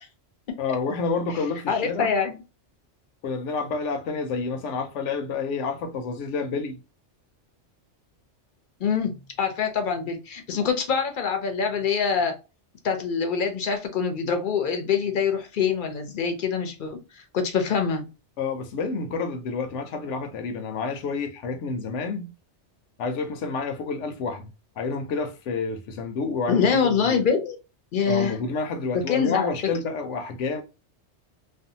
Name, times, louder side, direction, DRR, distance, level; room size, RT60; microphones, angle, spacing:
voice 1, 0.6-2.2 3.2-6.8 18.4-22.3 23.0-24.5 24.8-27.2 28.1-30.6, left 4 dB, 85° left, 0.9 m, -29 dB
voice 2, 1.7-2.4 8.8-12.4 12.8-18.1 26.5-27.6 27.9-28.4 28.9-29.5, left 6 dB, 55° left, 0.6 m, -25 dB
2.5 x 2.3 x 2.6 m
omnidirectional pair, 1.2 m